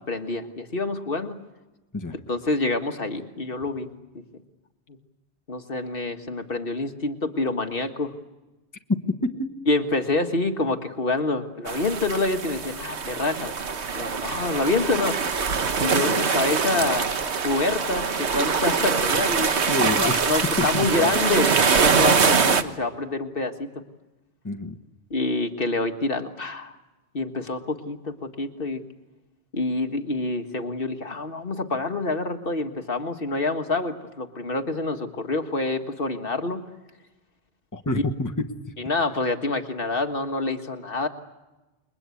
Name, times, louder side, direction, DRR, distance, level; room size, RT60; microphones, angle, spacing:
voice 1, 0.1-1.4 2.3-3.9 4.9-5.0 5.5-8.1 9.7-13.5 13.9-15.2 15.8-17.1 17.4-19.6 20.0-21.5 21.8-23.8 25.1-26.7 27.1-28.8 29.5-36.6 37.9-38.0 38.8-41.1, left 3 dB, 55° left, 6 dB, 1.7 m, -27 dB
voice 2, 9.1-9.5 19.7-20.3 20.6-21.1 24.4-24.8 37.7-38.5, left 2 dB, 15° left, 7 dB, 1.3 m, -27 dB
sound 1, 11.7-22.6, right 5 dB, 80° right, 1.5 m, -23 dB
29.5 x 22.0 x 8.4 m, 1.1 s
omnidirectional pair, 1.1 m